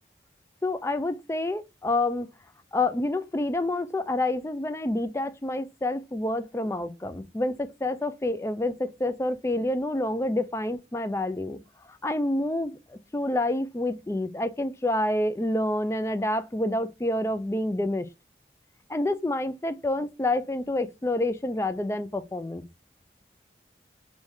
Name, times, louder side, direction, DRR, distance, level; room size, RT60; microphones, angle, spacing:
voice 1, 0.6-2.3 2.7-11.6 11.9-18.1 18.9-22.6, left 1 dB, 15° left, 0.3 m, -28 dB
3.5 x 2.7 x 3.1 m
head